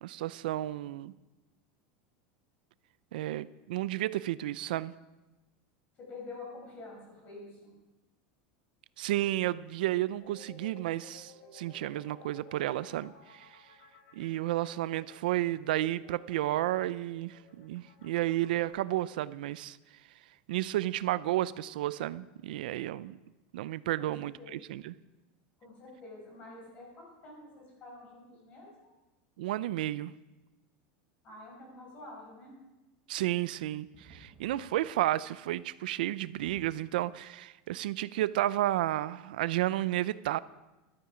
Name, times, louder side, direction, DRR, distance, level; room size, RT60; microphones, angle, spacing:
voice 1, 0.0-1.1 3.1-4.9 9.0-13.5 14.1-19.8 20.5-23.2 23.5-24.9 29.4-30.1 33.1-40.4, right 15 dB, 90° right, 17 dB, 0.5 m, -32 dB
voice 2, 6.0-7.7 24.0-24.1 24.4-24.6 25.6-28.7 31.2-32.5, left 3 dB, 30° left, -2 dB, 6.4 m, -48 dB
sound 1, 10.2-18.7, left 5 dB, 70° left, 4.7 m, -56 dB
sound 2, 33.9-35.1 35.4-35.5 35.8-35.9 36.4-37.0 37.7-37.8, right 3 dB, 25° right, 4.4 m, -57 dB
14.5 x 12.5 x 5.0 m, 1.1 s
supercardioid pair, 165°, 5 cm